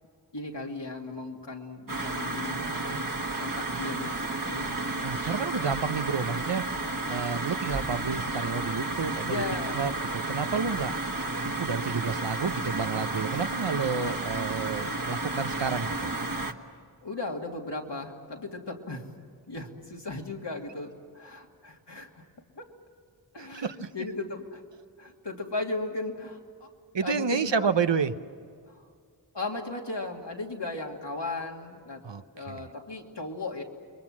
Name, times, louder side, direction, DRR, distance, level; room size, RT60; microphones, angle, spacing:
voice 1, 0.3-4.2 4.4-4.9 9.2-9.9 17.0-19.1 19.5-22.2 22.6-22.7 23.3-24.6 25.0-26.7 27.0-28.0 28.7-28.9 29.3-32.0 32.3-33.6, left 2 dB, 80° left, 0 dB, 2.8 m, -36 dB
sound 1, 1.9-16.5, right 2 dB, 50° right, 1.6 m, -32 dB
voice 2, 5.0-6.6 7.1-9.4 9.7-10.9 11.4-16.1 23.4-23.9 26.9-28.1 32.0-32.6, right 5 dB, 85° right, 11 dB, 0.9 m, -30 dB
30.0 x 23.0 x 7.5 m, 2.1 s
wide cardioid pair, 40°, 42 cm